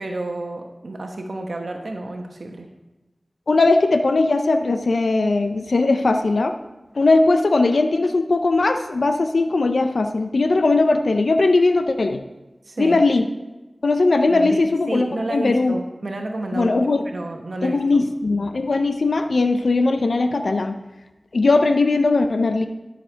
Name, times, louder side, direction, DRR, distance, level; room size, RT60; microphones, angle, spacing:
voice 1, 0.0-2.7 12.6-13.0 14.3-16.8 17.0-17.8, right 2 dB, 75° right, 3 dB, 1.0 m, -30 dB
voice 2, 3.5-6.6 7.0-12.2 12.8-13.2 13.8-15.8 16.5-17.0 17.6-20.8 21.3-22.7, left 3 dB, 85° left, 7 dB, 0.5 m, -19 dB
11.5 x 6.7 x 4.5 m, 1.1 s
wide cardioid pair, 45°, 0 cm